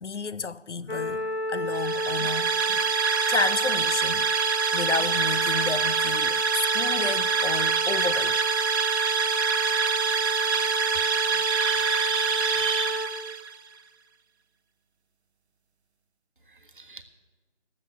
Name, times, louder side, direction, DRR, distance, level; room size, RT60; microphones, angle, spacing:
voice 1, 0.0-2.8 3.3-4.3 4.7-8.4, left 5 dB, 80° left, 0.6 m, -31 dB
sound 1, 0.9-13.1, right 1 dB, 55° left, 1.4 m, -31 dB
sound 2, 1.7-13.5, right 5 dB, 65° right, 0.6 m, -26 dB
voice 2, 11.4-12.9 16.8-17.0, right 3 dB, 45° right, 1.1 m, -34 dB
12.0 x 7.5 x 8.0 m
figure-of-eight pair, 165°, 35 cm